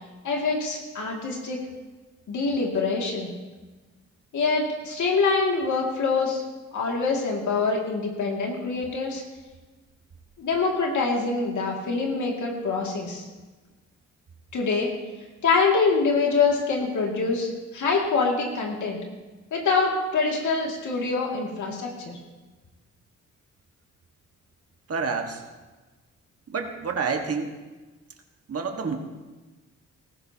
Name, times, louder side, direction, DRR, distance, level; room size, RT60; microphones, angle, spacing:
voice 1, 0.2-1.6 2.3-3.3 4.3-6.4 6.7-9.2 10.4-13.3 14.5-14.9 15.4-19.0 19.5-22.2, left 4 dB, 80° left, -1 dB, 2.3 m, -25 dB
voice 2, 24.9-25.4 26.5-27.5 28.5-29.0, right 5 dB, 50° right, 4 dB, 1.6 m, -28 dB
17.0 x 14.5 x 2.8 m, 1.2 s
cardioid pair, 85°, 30 cm